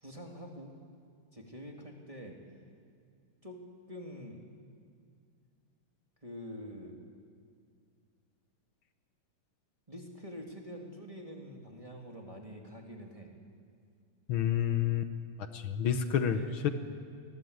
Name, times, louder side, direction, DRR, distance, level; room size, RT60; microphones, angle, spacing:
voice 1, 0.0-0.8 1.3-2.4 3.4-3.6 3.9-4.4 6.2-7.0 9.9-13.3 16.0-16.7, equal, 15° right, 1 dB, 2.5 m, -46 dB
voice 2, 14.3-15.1 15.5-16.7, left 9 dB, 70° left, 8 dB, 1.8 m, -29 dB
27.5 x 21.5 x 8.1 m, 2.3 s
omnidirectional pair, 2.4 m